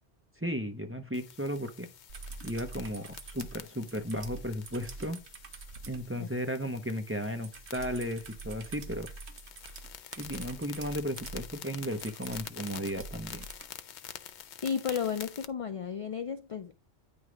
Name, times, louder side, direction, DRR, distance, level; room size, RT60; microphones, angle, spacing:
voice 1, 0.4-1.9 2.4-5.2 5.9-9.1 10.2-13.4, equal, 15° right, 0.6 m, -35 dB
sound 1, 1.1-15.5, left 9 dB, 90° left, 0.9 m, -48 dB
sound 2, 2.1-6.1 7.4-13.7 15.4-15.5, right 3 dB, 85° right, 1.2 m, -46 dB
voice 2, 14.6-16.7, left 7 dB, 55° left, 0.3 m, -33 dB
9.4 x 3.2 x 4.9 m
omnidirectional pair, 1.1 m